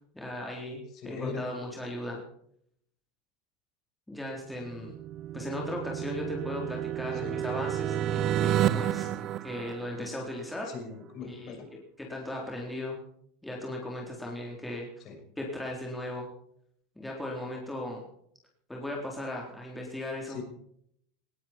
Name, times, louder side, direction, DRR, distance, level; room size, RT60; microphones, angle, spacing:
voice 1, 0.1-2.2 4.1-4.9 5.3-9.1 9.4-10.7 11.2-11.6 12.0-13.0 13.4-14.9 15.4-16.3 17.0-18.0 18.7-20.4, left 1 dB, 5° left, -1 dB, 3.9 m, -37 dB
voice 2, 0.9-1.4 7.1-7.4 9.0-9.2 10.0-10.1 10.6-11.7 15.0-15.2 20.3-20.4, left 5 dB, 40° left, 4 dB, 6.1 m, -40 dB
sound 1, 4.6-10.4, right 11 dB, 35° right, 0.7 m, -31 dB
19.5 x 16.5 x 4.6 m, 0.68 s
supercardioid pair, 145°, 0 cm